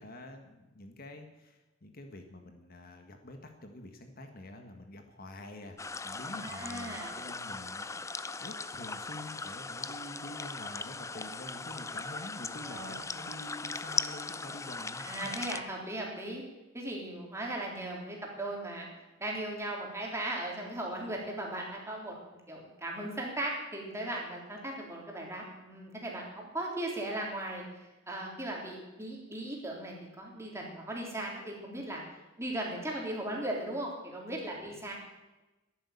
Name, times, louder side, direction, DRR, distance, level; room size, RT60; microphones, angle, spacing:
voice 1, 0.0-5.8 6.0-15.1, left 1 dB, 50° left, 5 dB, 1.6 m, -47 dB
sound 1, 5.8-15.6, left 4 dB, 15° left, 0.5 m, -39 dB
voice 2, 6.1-7.1 12.6-13.0 15.0-16.4 16.7-18.9 19.2-27.6 28.1-32.0 32.4-34.9, right 1 dB, 15° right, -2 dB, 3.5 m, -37 dB
11.0 x 11.0 x 8.6 m, 1.1 s
head